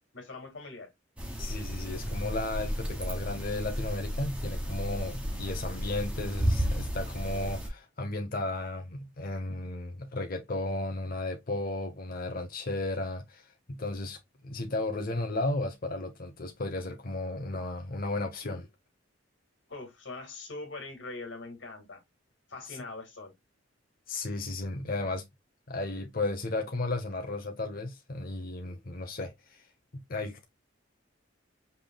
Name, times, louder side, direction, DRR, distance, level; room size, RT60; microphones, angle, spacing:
voice 1, 0.1-0.9 19.7-22.0 22.5-23.3, left 3 dB, 65° left, 2.0 m, -42 dB
sound 1, 1.2-7.7, equal, 5° right, 1.2 m, -33 dB
voice 2, 1.4-14.2 14.4-18.7 22.7-22.8 24.1-25.2 25.7-29.6 29.9-30.4, left 2 dB, 45° left, 0.8 m, -34 dB
5.5 x 3.3 x 2.2 m
head